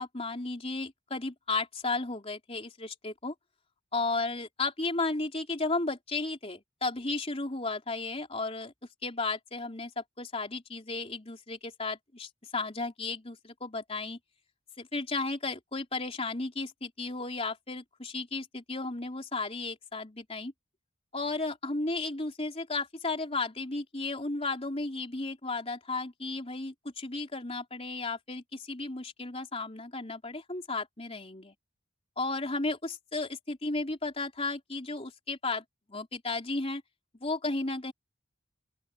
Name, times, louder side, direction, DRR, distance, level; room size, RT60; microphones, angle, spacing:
voice 1, 0.0-3.3 3.9-8.7 9.0-14.2 14.8-20.5 21.1-31.5 32.2-36.8 37.2-37.9, left 3 dB, 30° left, 3.6 m, -34 dB
open air
head